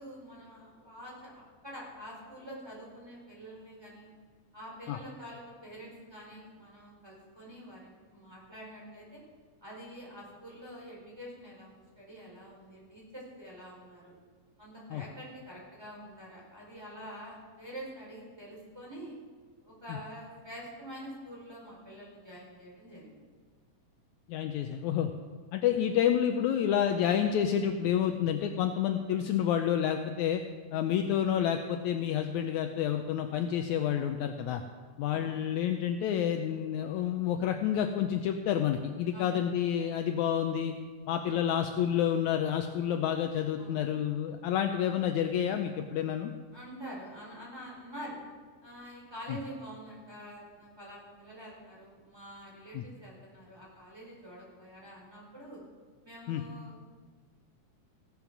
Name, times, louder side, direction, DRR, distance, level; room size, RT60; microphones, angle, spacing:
voice 1, 0.0-4.1 4.5-9.2 9.6-14.1 14.6-19.1 19.6-23.3 35.1-35.3 39.1-39.3 41.2-41.4 43.6-43.8 46.5-48.2 48.6-55.6 56.0-56.8, equal, 5° right, -5 dB, 4.4 m, -46 dB
voice 2, 24.3-25.1 25.5-30.4 30.7-34.6 35.0-40.7 41.1-46.3 49.3-49.4 52.7-52.8 56.3-56.4, left 9 dB, 80° left, 6 dB, 1.8 m, -29 dB
16.0 x 10.5 x 6.0 m, 1.5 s
omnidirectional pair, 3.8 m